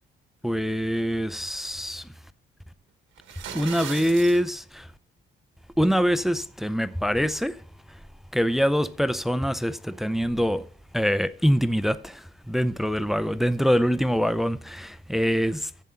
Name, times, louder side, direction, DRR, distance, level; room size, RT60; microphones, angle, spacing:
voice 1, 0.4-2.1 3.5-4.9 5.8-7.6 8.3-10.6 10.9-15.7, equal, ahead, 0.5 m, -24 dB
sound 1, 3.2-4.4, right 8 dB, 80° right, 1.4 m, -37 dB
7.5 x 7.4 x 5.5 m
cardioid pair, 90°, 20 cm